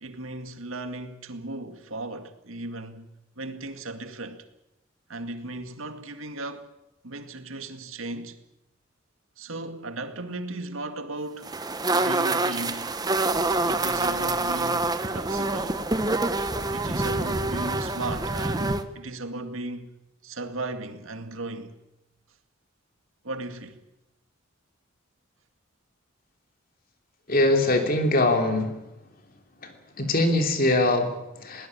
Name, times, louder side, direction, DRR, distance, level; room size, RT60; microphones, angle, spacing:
voice 1, 0.0-3.1 3.4-4.5 5.1-6.7 7.0-8.4 9.4-11.5 11.9-12.9 13.6-15.8 16.7-19.9 20.2-21.8 23.2-23.8, right 2 dB, 75° right, 2.1 m, -36 dB
Flies (flying insect), 11.4-18.8, right 2 dB, 20° right, 1.1 m, -26 dB
voice 2, 27.3-29.1 29.6-31.7, left 2 dB, 45° left, 3.1 m, -23 dB
20.5 x 19.0 x 8.6 m
head